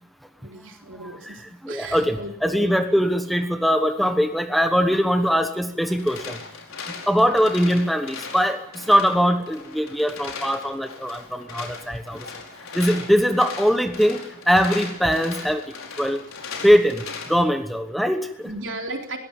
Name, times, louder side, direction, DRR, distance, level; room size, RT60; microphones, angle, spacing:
voice 1, 0.4-2.8 12.2-12.3 18.5-19.2, right 2 dB, 65° right, 3 dB, 3.8 m, -35 dB
voice 2, 1.0-6.4 7.1-12.3 12.7-15.6 16.0-16.2 16.6-18.5, equal, ahead, 7 dB, 1.2 m, -21 dB
sound 1, 5.8-17.4, left 5 dB, 85° left, 4.9 m, -38 dB
21.5 x 17.5 x 8.8 m, 0.77 s
head